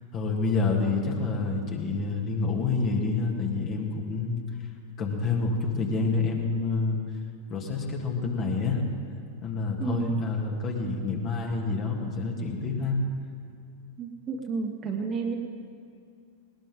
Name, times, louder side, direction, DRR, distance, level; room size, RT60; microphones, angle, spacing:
voice 1, 0.1-4.4 5.0-7.0 7.5-8.8 9.4-13.0 14.8-15.0, left 4 dB, 30° left, 0 dB, 2.6 m, -28 dB
voice 2, 9.8-10.2 14.0-15.4, right 5 dB, 30° right, 2 dB, 1.9 m, -31 dB
19.5 x 19.5 x 3.8 m, 2.4 s
figure-of-eight pair, 90°, 0 cm